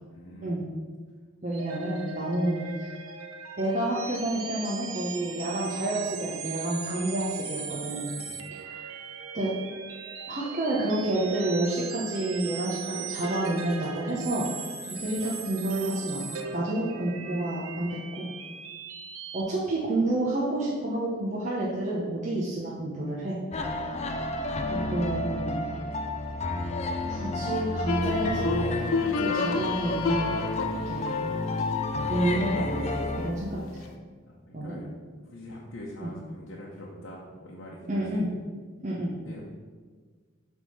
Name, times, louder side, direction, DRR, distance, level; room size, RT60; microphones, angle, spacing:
voice 1, 0.1-0.6 8.2-8.5 34.2-34.9 35.2-38.2 39.2-39.4, left 1 dB, 65° left, -4 dB, 0.9 m, -44 dB
voice 2, 1.4-2.9 3.6-8.1 8.5-8.9 9.3-9.5 10.3-14.5 14.9-18.3 19.3-23.4 24.7-25.6 27.0-30.5 30.8-31.2 32.1-33.9 34.5-34.8 36.0-36.1 37.9-38.3 38.8-39.2, right 1 dB, 35° right, -5 dB, 0.9 m, -29 dB
sound 1, 1.5-19.4, right 6 dB, 90° right, 0.7 m, -39 dB
sound 2, 23.5-33.3, left 2 dB, 30° left, 0.5 m, -31 dB
sound 3, 27.9-33.9, left 4 dB, 85° left, 0.6 m, -32 dB
8.0 x 3.6 x 5.6 m, 1.5 s
head